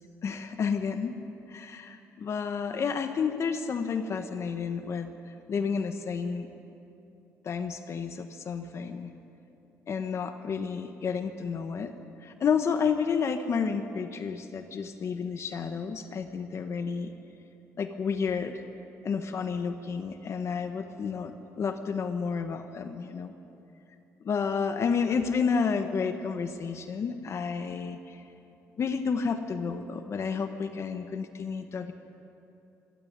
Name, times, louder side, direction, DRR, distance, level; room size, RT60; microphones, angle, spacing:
voice 1, 0.2-1.2 1.5-5.1 5.5-6.5 7.4-9.1 9.9-11.9 12.2-17.1 17.8-18.6 19.0-23.3 24.2-28.2 28.8-31.9, left 6 dB, 50° left, 8 dB, 1.3 m, -31 dB
26.0 x 13.0 x 9.6 m, 2.8 s
cardioid pair, 95°, 6 cm